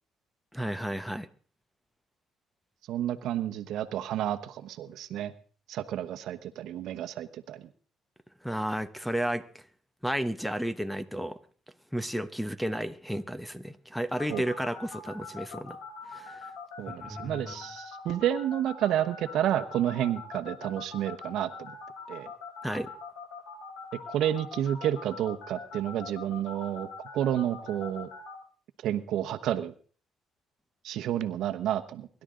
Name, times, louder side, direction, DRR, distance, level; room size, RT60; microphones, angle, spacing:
voice 1, 0.5-1.3 8.4-9.6 10.0-11.4 11.9-15.8 16.1-16.5 17.0-17.5 22.6-22.9, equal, ahead, 0.9 m, -32 dB
voice 2, 2.9-5.3 5.7-7.7 14.3-14.4 16.8-21.8 22.1-22.3 24.1-28.1 28.8-29.7 30.8-32.1, right 11 dB, 70° right, 1.0 m, -30 dB
sound 1, 14.2-28.3, left 5 dB, 85° left, 5.9 m, -42 dB
24.0 x 11.5 x 3.8 m
cardioid pair, 90°, 0 cm